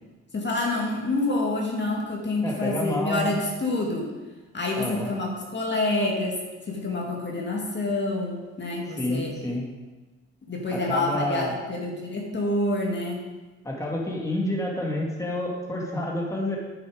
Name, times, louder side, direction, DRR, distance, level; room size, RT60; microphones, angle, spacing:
voice 1, 0.3-4.1 4.5-6.4 6.6-9.3 10.5-13.2, left 2 dB, 35° left, -1 dB, 2.2 m, -27 dB
voice 2, 2.4-3.4 4.7-5.1 9.0-9.7 10.7-11.6 13.6-16.6, left 1 dB, 10° left, -2 dB, 2.2 m, -29 dB
9.7 x 6.9 x 5.1 m, 1.2 s
cardioid pair, 90°, 30 cm